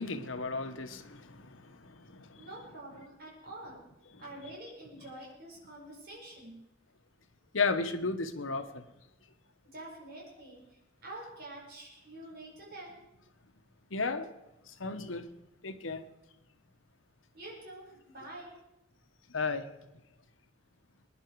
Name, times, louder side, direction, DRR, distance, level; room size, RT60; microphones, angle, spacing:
voice 1, 0.0-2.5 7.5-8.8 13.9-14.3 14.7-15.3 15.6-16.0 19.3-19.7, left 4 dB, 75° left, 1.2 m, -34 dB
voice 2, 2.4-3.9 4.2-6.6 9.7-13.0 17.3-18.5, right 1 dB, 50° right, 5.4 m, -47 dB
22.0 x 10.5 x 4.7 m
head